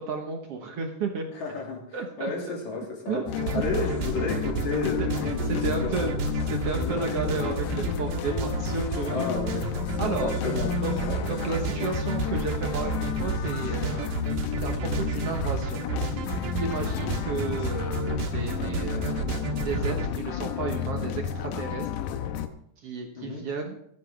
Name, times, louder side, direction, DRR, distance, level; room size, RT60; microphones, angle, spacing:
voice 1, 0.0-1.3 1.9-2.5 3.1-3.6 5.0-6.3 6.5-9.3 10.0-10.3 10.8-10.9 11.3-14.1 14.6-15.8 16.3-21.9 22.8-23.8, right 4 dB, 60° right, 2 dB, 1.9 m, -33 dB
voice 2, 1.3-3.2 3.5-6.2 6.8-7.0 9.0-11.2 14.8-15.0 16.9-17.1 23.2-23.4, left 4 dB, 65° left, 0 dB, 3.8 m, -33 dB
sound 1, 3.3-22.5, left 9 dB, 80° left, 2.3 m, -32 dB
sound 2, 3.4-20.1, right 5 dB, 75° right, 3.4 m, -32 dB
16.0 x 12.0 x 3.5 m, 0.70 s
omnidirectional pair, 3.7 m